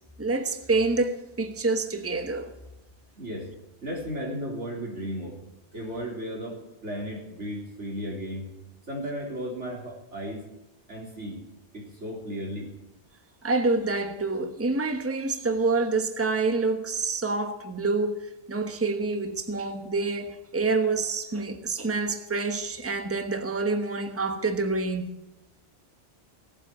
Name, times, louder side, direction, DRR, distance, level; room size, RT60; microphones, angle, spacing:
voice 1, 0.2-2.5 13.4-25.1, right 3 dB, 15° right, 1.1 m, -27 dB
voice 2, 3.2-3.5 3.8-5.4 5.7-8.5 8.9-10.4 10.9-11.4 11.7-12.7, equal, 85° right, 4.2 m, -35 dB
18.0 x 7.7 x 9.6 m
omnidirectional pair, 1.2 m